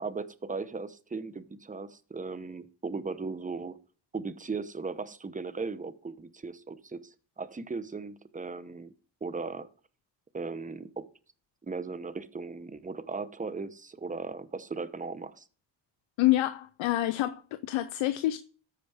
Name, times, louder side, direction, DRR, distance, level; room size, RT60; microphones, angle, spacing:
voice 1, 0.0-3.8 4.1-8.9 9.2-9.7 10.3-11.0 11.6-15.5, right 4 dB, 15° right, 0.9 m, -37 dB
voice 2, 16.2-18.4, left 15 dB, 85° left, 0.6 m, -27 dB
14.0 x 5.0 x 3.4 m
cardioid pair, 70°, 46 cm